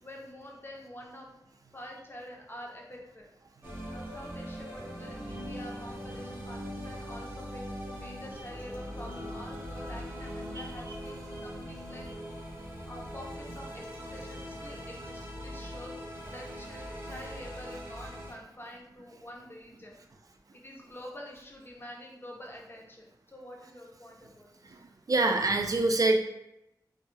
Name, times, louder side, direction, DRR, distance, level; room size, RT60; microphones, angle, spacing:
voice 1, 0.0-1.4 1.7-3.3 3.9-12.1 12.8-15.9 16.3-20.0 20.5-24.7, equal, 30° left, -1 dB, 0.6 m, -47 dB
sound 1, 3.6-18.3, equal, 30° right, 0.7 m, -41 dB
voice 2, 25.1-26.2, right 2 dB, 50° right, 4 dB, 0.4 m, -24 dB
2.2 x 2.0 x 3.2 m, 0.84 s
cardioid pair, 45°, 8 cm